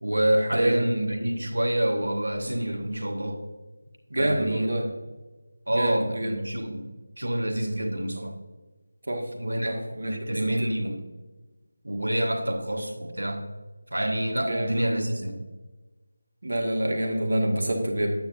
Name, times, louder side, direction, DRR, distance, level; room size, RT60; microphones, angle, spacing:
voice 1, 0.0-3.4 4.2-4.7 5.7-6.9 7.2-8.4 9.4-11.0 11.8-13.4 13.9-15.5, right 1 dB, 90° right, 4 dB, 1.4 m, -27 dB
voice 2, 0.5-0.9 4.1-4.9 5.8-6.3 9.1-9.2 9.6-10.8 14.4-14.8 16.4-18.1, right 1 dB, 70° right, 2 dB, 1.9 m, -27 dB
9.4 x 8.9 x 2.6 m, 1.2 s
figure-of-eight pair, 170°, 0 cm